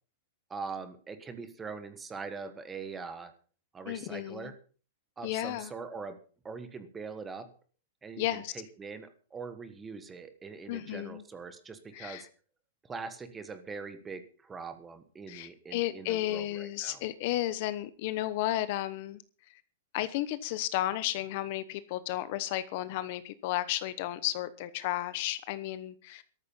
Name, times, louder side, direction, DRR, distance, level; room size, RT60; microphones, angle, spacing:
voice 1, 0.5-3.3 3.7-4.5 5.2-6.2 6.4-7.5 8.0-12.3 12.8-17.0, right 4 dB, 10° right, 10 dB, 1.4 m, -42 dB
voice 2, 3.9-4.5 5.2-5.7 8.2-8.5 10.7-11.2 11.9-12.3 15.3-19.2 19.9-26.2, left 14 dB, 40° left, 14 dB, 1.0 m, -33 dB
13.5 x 12.5 x 5.6 m, 0.40 s
supercardioid pair, 170°, 0 cm